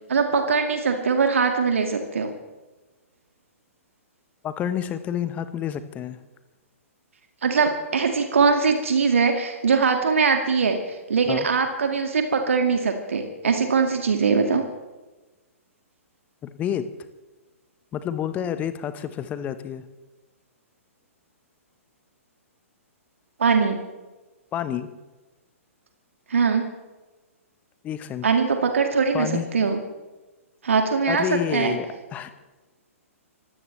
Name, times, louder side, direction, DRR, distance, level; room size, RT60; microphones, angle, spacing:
voice 1, 0.1-2.3 7.4-14.7 23.4-23.8 26.3-26.7 28.2-29.8 30.6-31.3 31.5-31.8, right 5 dB, 65° right, 5 dB, 2.1 m, -21 dB
voice 2, 4.4-6.2 11.3-11.5 16.4-16.9 17.9-19.8 24.5-24.9 27.8-28.3 29.1-29.5 31.1-31.9 32.1-32.3, left 9 dB, 20° left, 12 dB, 1.1 m, -29 dB
25.0 x 16.5 x 3.3 m, 1.2 s
figure-of-eight pair, 115°, 8 cm